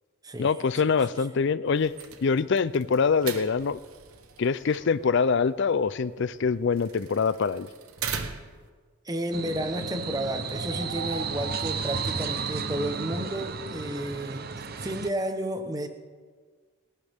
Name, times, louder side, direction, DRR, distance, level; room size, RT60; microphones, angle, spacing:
voice 1, 0.4-1.9 2.2-3.8 4.4-7.7, left 5 dB, 55° left, 17 dB, 0.4 m, -24 dB
sound 1, 1.7-8.7, right 6 dB, 80° right, 1.2 m, -41 dB
voice 2, 9.0-14.5 14.8-15.9, right 1 dB, 15° right, 7 dB, 1.0 m, -32 dB
sound 2, 9.3-15.1, right 5 dB, 45° right, 0.7 m, -33 dB
29.5 x 11.5 x 3.6 m, 1.5 s
head